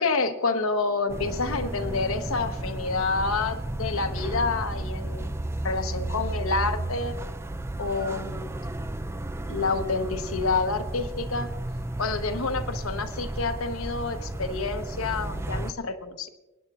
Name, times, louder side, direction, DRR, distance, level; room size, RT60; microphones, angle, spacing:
voice 1, 0.0-5.3 5.6-7.1 7.8-8.5 9.5-11.5 12.0-16.3, left 4 dB, 90° left, 8 dB, 0.9 m, -28 dB
sound 1, 1.1-15.7, right 1 dB, 10° right, 0.3 m, -33 dB
26.0 x 10.0 x 2.4 m, 1.1 s
head